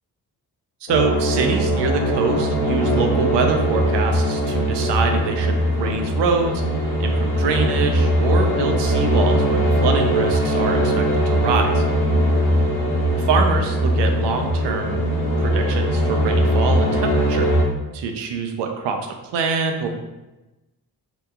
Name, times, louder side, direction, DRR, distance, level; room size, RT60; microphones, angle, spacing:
sound 1, 0.9-17.6, equal, 90° left, 0.7 m, -20 dB
voice 1, 0.9-6.6 7.0-11.8 13.3-17.5 17.9-19.0 19.3-19.9, right 5 dB, 75° right, 4 dB, 0.6 m, -24 dB
2.8 x 2.2 x 3.5 m, 1.0 s
supercardioid pair, 45°, 43 cm